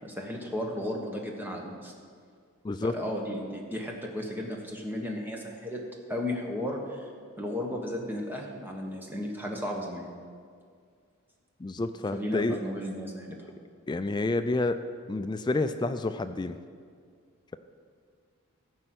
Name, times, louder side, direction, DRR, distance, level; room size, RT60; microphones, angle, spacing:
voice 1, 0.0-1.9 2.8-5.8 6.1-7.1 7.4-10.1 12.1-13.5, left 1 dB, 10° right, 0 dB, 1.3 m, -34 dB
voice 2, 2.6-3.0 11.6-12.6 13.9-14.8 15.1-16.6, left 2 dB, 20° left, 10 dB, 0.3 m, -29 dB
14.0 x 5.5 x 7.8 m, 2.1 s
head